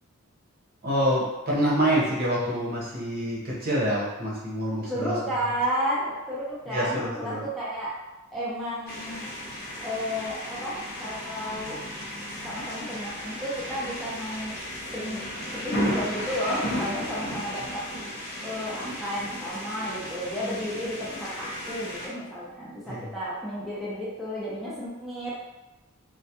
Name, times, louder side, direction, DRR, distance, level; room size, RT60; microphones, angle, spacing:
voice 1, 0.8-5.1 6.7-7.4 22.9-23.1, equal, 45° right, -6 dB, 0.7 m, -26 dB
voice 2, 4.9-7.9 8.3-9.3 9.8-11.8 12.4-14.6 14.9-15.2 15.6-17.8 18.4-25.3, equal, ahead, -9 dB, 0.4 m, -32 dB
sound 1, 8.9-22.1, equal, 50° left, 0.6 m, -34 dB
2.2 x 2.1 x 2.8 m, 1.1 s
head